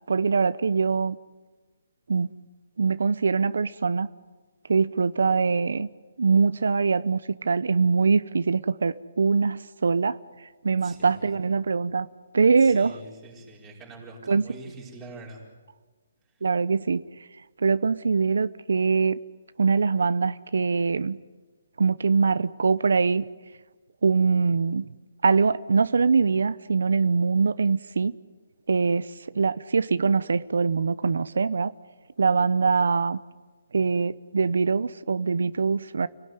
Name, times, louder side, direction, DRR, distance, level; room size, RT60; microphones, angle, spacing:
voice 1, 0.1-1.2 2.1-2.3 2.8-4.1 4.7-5.9 6.2-10.2 10.6-12.1 12.3-13.0 14.3-14.4 16.4-17.0 17.6-19.2 19.6-21.2 21.8-23.3 24.0-24.9 25.2-28.1 28.7-29.1 29.4-31.7 32.2-33.2 33.7-36.1, right 4 dB, 85° right, 15 dB, 0.8 m, -23 dB
voice 2, 10.8-11.3 12.5-15.4, right 3 dB, 10° right, -3 dB, 5.0 m, -44 dB
29.5 x 17.5 x 9.6 m, 1.3 s
hypercardioid pair, 170°, 0 cm